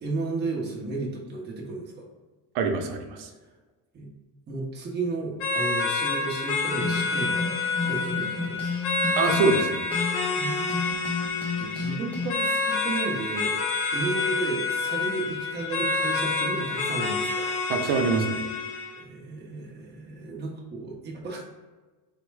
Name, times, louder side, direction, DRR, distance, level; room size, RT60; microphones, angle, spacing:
voice 1, 0.0-2.1 3.9-4.1 4.5-7.5 7.8-8.7 10.4-11.0 11.3-17.5 18.9-21.4, right 3 dB, 25° right, -2 dB, 0.8 m, -33 dB
voice 2, 2.5-3.3 9.1-9.8 17.7-18.5, right 4 dB, 85° right, 4 dB, 0.7 m, -24 dB
sound 1, 5.4-19.0, left 3 dB, 80° left, 0.9 m, -28 dB
sound 2, 6.6-10.4 10.7-12.3, left 4 dB, 5° left, 0.5 m, -32 dB
4.3 x 2.1 x 4.6 m, 1.3 s
cardioid pair, 175°, 38 cm